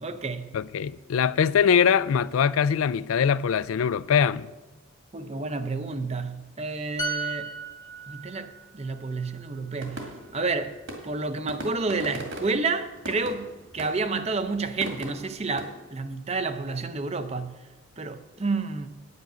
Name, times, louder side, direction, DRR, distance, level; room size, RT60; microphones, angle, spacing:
voice 1, 0.0-0.6 5.1-7.5 8.1-10.8 11.0-13.5 13.7-17.6 18.0-18.9, right 3 dB, 30° right, 0.6 m, -30 dB
voice 2, 0.5-4.5, left 7 dB, 80° left, 0.4 m, -22 dB
sound 1, 7.0-10.6 10.9-11.1, right 3 dB, 20° left, 1.0 m, -36 dB
sound 2, 9.8-15.6, right 1 dB, 60° right, 2.0 m, -39 dB
9.4 x 9.1 x 6.2 m
head